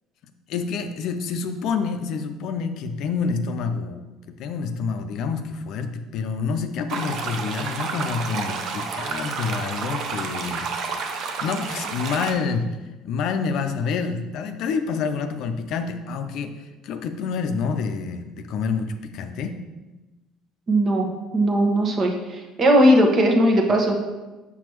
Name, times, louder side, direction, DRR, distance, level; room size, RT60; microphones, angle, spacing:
voice 1, 0.5-10.7 11.4-12.8 13.0-16.5 16.8-19.6, left 5 dB, 60° left, 8 dB, 0.5 m, -28 dB
sound 1, 6.9-12.3, right 5 dB, 60° right, 0.7 m, -30 dB
voice 2, 20.7-21.1 21.3-24.0, equal, 45° right, 2 dB, 1.2 m, -18 dB
5.9 x 5.9 x 3.0 m, 1.1 s
hypercardioid pair, 65°, 0 cm